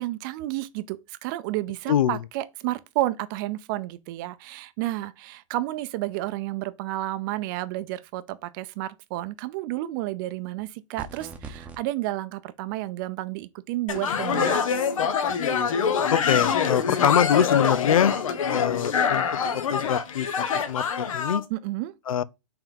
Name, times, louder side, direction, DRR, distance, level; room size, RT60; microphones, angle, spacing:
voice 1, 0.0-14.6 21.5-21.9, right 16 dB, 40° right, 0.6 m, -31 dB
voice 2, 1.9-2.2 16.1-18.1 18.5-19.4 19.7-20.3 20.7-21.4 22.1-22.2, left 9 dB, 90° left, 0.5 m, -24 dB
sound 1, 11.0-11.8, right 4 dB, 5° right, 0.9 m, -40 dB
sound 2, 13.9-21.4, left 6 dB, 75° left, 1.2 m, -25 dB
5.8 x 3.5 x 5.2 m
hypercardioid pair, 140°, 17 cm